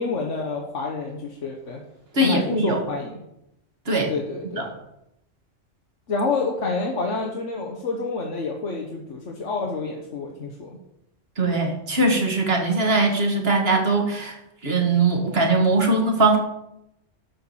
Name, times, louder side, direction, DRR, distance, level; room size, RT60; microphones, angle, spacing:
voice 1, 0.0-1.8 2.2-3.2 4.1-4.7 6.1-10.7, left 3 dB, 65° left, 0 dB, 1.5 m, -28 dB
voice 2, 2.2-2.8 3.9-4.1 4.6-4.7 11.4-14.4 14.6-16.4, right 2 dB, 50° right, 3 dB, 1.9 m, -21 dB
12.0 x 4.6 x 7.0 m, 0.84 s
omnidirectional pair, 1.3 m